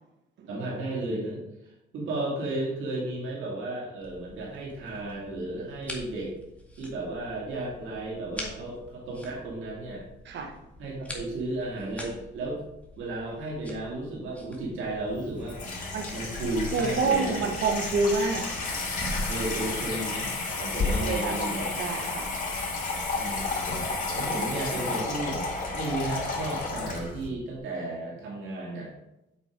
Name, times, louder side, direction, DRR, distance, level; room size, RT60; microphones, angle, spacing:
voice 1, 0.5-1.4 1.9-6.3 6.8-10.0 10.8-12.6 13.0-15.6 16.1-17.4 19.3-20.3 20.6-21.8 23.1-23.6 24.1-25.4 25.7-28.9, right 2 dB, 80° right, -4 dB, 2.5 m, -33 dB
sound 1, 4.0-23.7, left 1 dB, 5° left, 1.9 m, -45 dB
voice 2, 10.2-10.6 15.9-16.1 16.7-18.5 21.0-22.3, right 4 dB, 65° right, 4 dB, 1.1 m, -28 dB
Water tap faucet / Sink (filling or washing), 15.1-27.3, left 3 dB, 40° left, 3.2 m, -32 dB
8.3 x 4.7 x 5.1 m, 0.91 s
cardioid pair, 90°, 20 cm